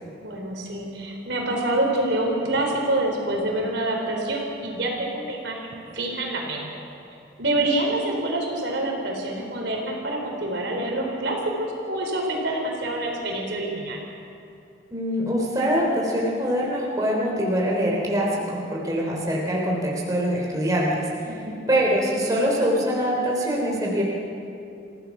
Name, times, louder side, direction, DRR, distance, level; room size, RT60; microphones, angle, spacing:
voice 1, 0.2-6.7 7.4-14.0 21.2-21.6, right 1 dB, 70° right, 0 dB, 4.0 m, -26 dB
voice 2, 14.9-21.1 21.7-24.0, equal, 20° right, -3 dB, 3.4 m, -24 dB
27.0 x 16.5 x 6.0 m, 2.7 s
head